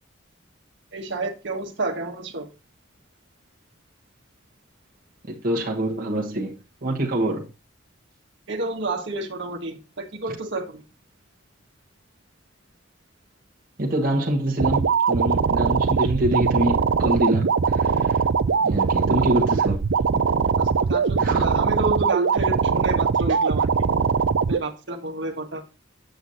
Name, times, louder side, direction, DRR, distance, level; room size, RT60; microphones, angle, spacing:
voice 1, 0.9-2.5 8.5-10.8 20.6-23.7 24.5-25.6, right 2 dB, 65° right, 1.5 m, -30 dB
voice 2, 5.3-7.5 10.3-10.4 13.8-18.2 18.6-19.8 21.2-21.5, right 1 dB, 50° right, 1.3 m, -25 dB
sound 1, 14.6-24.6, right 5 dB, 80° right, 0.5 m, -21 dB
8.2 x 8.0 x 2.7 m
head